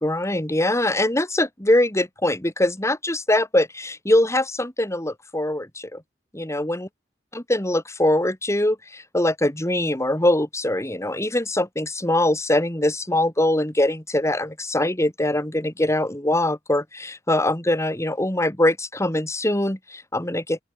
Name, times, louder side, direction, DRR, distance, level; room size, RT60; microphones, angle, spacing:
voice 1, 0.0-6.0 6.3-6.9 7.5-20.6, left 1 dB, 15° left, 2.9 m, -22 dB
open air
head